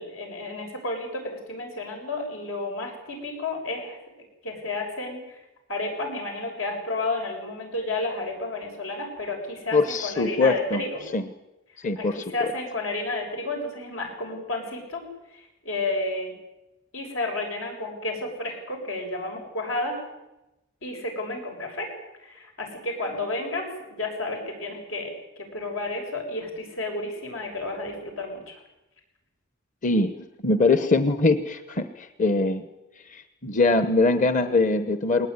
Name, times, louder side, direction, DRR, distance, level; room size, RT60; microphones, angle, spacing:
voice 1, 0.0-4.0 4.4-5.4 5.7-11.0 12.0-15.0 15.3-16.3 16.9-20.0 20.8-21.9 22.2-28.6, left 2 dB, 90° left, 2 dB, 7.3 m, -31 dB
voice 2, 9.7-10.8 11.1-11.3 11.8-12.3 29.8-30.2 30.4-32.7 33.1-35.3, left 3 dB, 40° left, 10 dB, 1.0 m, -22 dB
20.5 x 19.5 x 9.7 m, 0.98 s
head